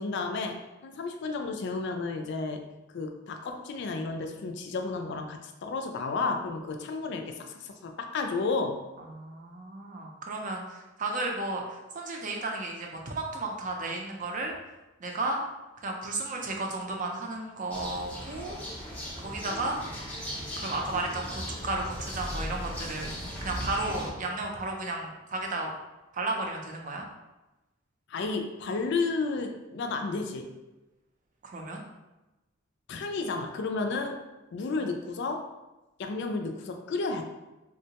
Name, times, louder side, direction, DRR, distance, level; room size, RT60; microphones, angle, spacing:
voice 1, 0.0-2.6 2.9-8.8 28.1-30.5 32.9-34.2 34.5-35.5 36.0-37.2, left 3 dB, 60° left, 4 dB, 0.3 m, -32 dB
voice 2, 9.0-14.5 15.0-15.4 15.8-18.6 19.2-19.8 20.6-23.1 23.4-25.7 26.1-27.1 31.4-31.8, right 2 dB, 40° right, 1 dB, 0.5 m, -33 dB
sound 1, 17.7-24.1, equal, 5° left, 0.6 m, -37 dB
3.7 x 2.2 x 2.8 m, 1.0 s
head